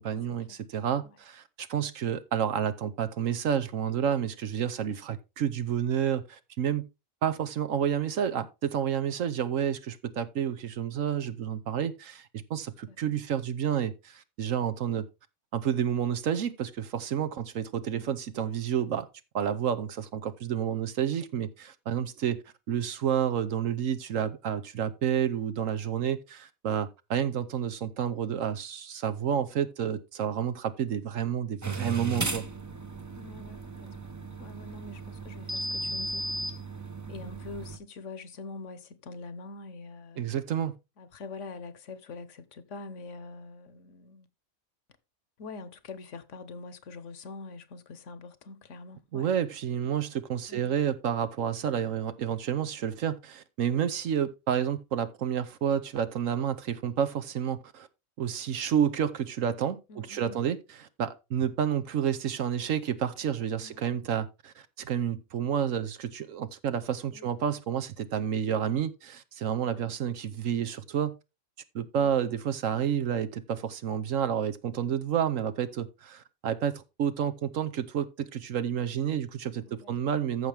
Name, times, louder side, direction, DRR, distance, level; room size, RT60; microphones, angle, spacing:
voice 1, 0.0-6.9 7.2-15.0 15.5-19.1 19.3-22.4 22.7-32.4 40.2-40.8 49.1-57.9 58.2-71.1 71.7-80.5, right 8 dB, 70° right, 1.2 m, -30 dB
voice 2, 17.9-18.2 33.1-34.1 34.4-36.3 37.1-40.3 41.0-44.3 45.4-49.3 50.5-50.7 59.9-60.4 63.4-64.0 67.1-67.3 69.7-70.0 79.7-80.2, left 3 dB, 60° left, 1.3 m, -45 dB
sound 1, 31.6-37.8, right 3 dB, 15° right, 0.7 m, -36 dB
14.5 x 5.9 x 3.3 m
omnidirectional pair, 1.4 m